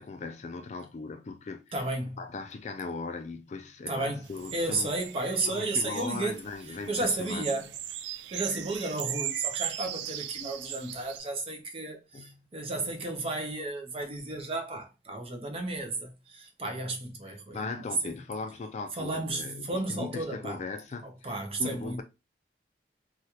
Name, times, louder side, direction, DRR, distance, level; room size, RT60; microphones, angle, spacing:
voice 1, 0.0-1.6 2.2-4.9 5.4-7.4 8.6-8.7 12.1-12.4 17.5-21.3 21.6-22.0, left 4 dB, 40° left, 0.3 m, -38 dB
voice 2, 1.7-2.2 3.9-7.7 8.3-18.2 18.9-20.6 21.0-22.0, right 2 dB, 35° right, 0.6 m, -33 dB
sound 1, 4.2-11.2, right 11 dB, 85° right, 0.3 m, -38 dB
3.1 x 2.3 x 2.8 m
head